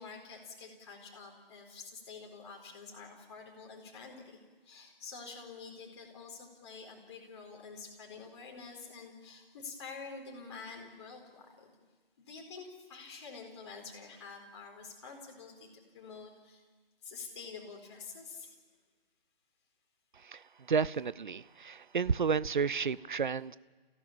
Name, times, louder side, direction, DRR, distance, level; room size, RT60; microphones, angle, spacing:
voice 1, 0.0-4.4 4.6-11.7 12.2-15.7 15.9-16.6 17.0-18.6 20.9-21.1, left 4 dB, 30° left, 1 dB, 4.3 m, -48 dB
voice 2, 20.2-23.6, right 6 dB, 55° right, 20 dB, 0.6 m, -32 dB
26.5 x 16.5 x 8.9 m, 1.4 s
figure-of-eight pair, 150°, 29 cm